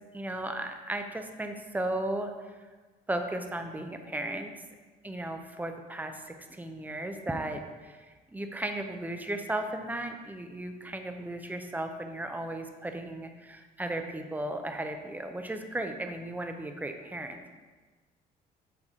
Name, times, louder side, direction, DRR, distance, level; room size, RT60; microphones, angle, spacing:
voice 1, 0.1-2.3 3.1-4.5 5.0-8.1 8.3-17.5, right 1 dB, 10° right, 5 dB, 0.7 m, -35 dB
7.8 x 4.8 x 3.8 m, 1.3 s
cardioid pair, 110°, 17 cm